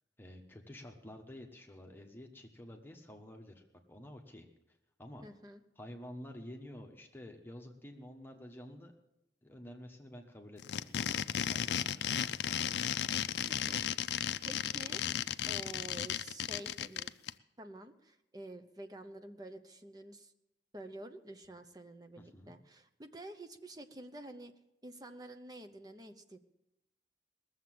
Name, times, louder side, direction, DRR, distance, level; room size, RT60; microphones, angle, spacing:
voice 1, 0.2-3.6 3.9-5.2 5.8-8.9 9.4-12.4 22.2-22.6, left 1 dB, 10° left, 2 dB, 1.2 m, -50 dB
voice 2, 5.2-5.6 13.5-13.9 14.4-15.0 15.5-17.1 17.6-20.3 20.7-24.5 24.8-26.4, right 1 dB, 20° right, 7 dB, 0.8 m, -49 dB
sound 1, 10.6-17.3, left 9 dB, 80° left, 0.4 m, -34 dB
19.0 x 7.3 x 7.7 m, 0.89 s
head